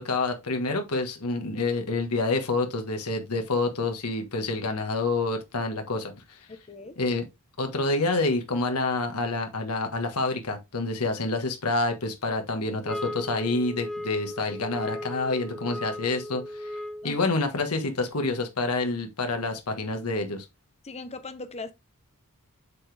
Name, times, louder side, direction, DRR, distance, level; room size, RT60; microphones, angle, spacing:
voice 1, 0.0-6.4 7.0-7.2 7.6-16.7 17.0-20.4, left 3 dB, 85° left, 1.5 m, -28 dB
voice 2, 6.5-7.0 17.0-17.2 20.8-21.7, left 3 dB, 30° left, 0.9 m, -39 dB
sound 1, 12.9-17.2, left 1 dB, ahead, 0.7 m, -37 dB
7.5 x 4.2 x 3.4 m
head